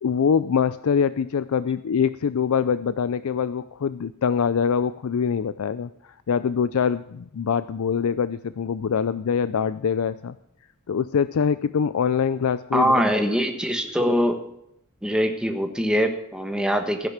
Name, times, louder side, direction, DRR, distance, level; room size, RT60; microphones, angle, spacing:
voice 1, 0.0-10.4 10.9-13.0, left 6 dB, 85° left, 14 dB, 0.4 m, -24 dB
voice 2, 12.7-14.4 15.0-17.1, equal, 5° right, 4 dB, 1.4 m, -23 dB
15.0 x 10.5 x 5.9 m, 0.78 s
head